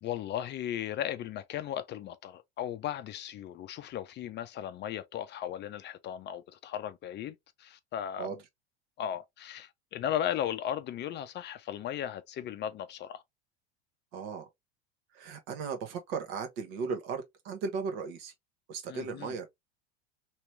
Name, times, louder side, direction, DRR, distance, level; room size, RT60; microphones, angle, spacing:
voice 1, 0.0-8.3 9.0-13.2 18.9-19.3, left 10 dB, 35° left, 0.5 m, -36 dB
voice 2, 14.1-14.5 15.1-18.3 18.7-19.5, right 5 dB, 60° right, 1.2 m, -36 dB
3.1 x 3.0 x 3.1 m
hypercardioid pair, 80°, 34 cm